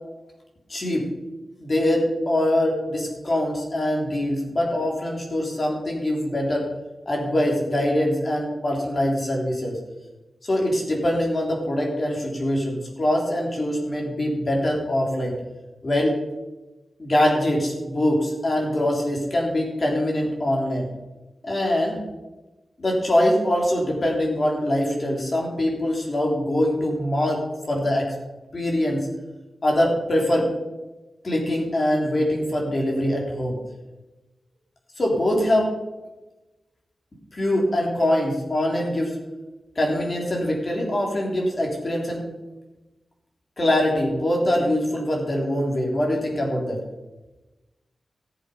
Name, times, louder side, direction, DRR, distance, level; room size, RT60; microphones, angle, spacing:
voice 1, 0.7-1.1 1.6-6.7 7.1-9.8 10.4-15.4 15.8-16.2 17.0-20.9 21.4-22.0 22.8-28.1 28.5-29.1 29.6-30.5 31.2-33.6 35.0-35.7 37.3-39.2 39.8-42.2 43.6-46.8, left 1 dB, 40° left, -1 dB, 3.5 m, -23 dB
15.0 x 7.6 x 5.5 m, 1.1 s
wide cardioid pair, 100°, 0 cm